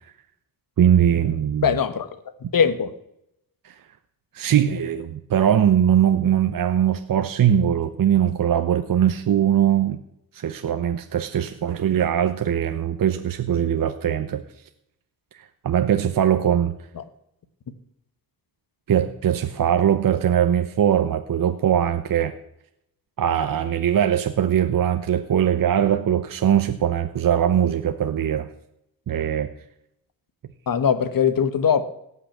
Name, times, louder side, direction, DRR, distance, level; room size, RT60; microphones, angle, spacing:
voice 1, 0.8-1.8 3.6-3.8 4.3-10.0 10.3-14.4 15.3-16.7 18.9-22.4 23.2-28.5 29.1-29.5, right 9 dB, 55° right, 8 dB, 0.9 m, -21 dB
voice 2, 1.6-2.1 2.5-2.9 30.7-31.8, left 7 dB, 60° left, 12 dB, 1.4 m, -20 dB
17.5 x 6.0 x 7.4 m, 0.77 s
cardioid pair, 80°, 39 cm